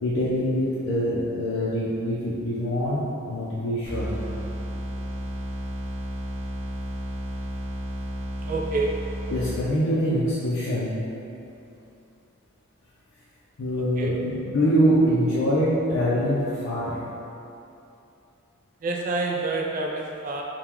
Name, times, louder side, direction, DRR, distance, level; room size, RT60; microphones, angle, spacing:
voice 1, 0.0-4.1 9.3-11.0 13.6-17.0, equal, 65° left, -9 dB, 0.6 m, -24 dB
sound 1, 3.8-9.9, right 1 dB, 75° right, 0.6 m, -32 dB
voice 2, 8.4-9.1 14.0-14.2 18.8-20.4, right 3 dB, 40° right, 0 dB, 0.3 m, -28 dB
3.6 x 2.2 x 4.4 m, 2.8 s
head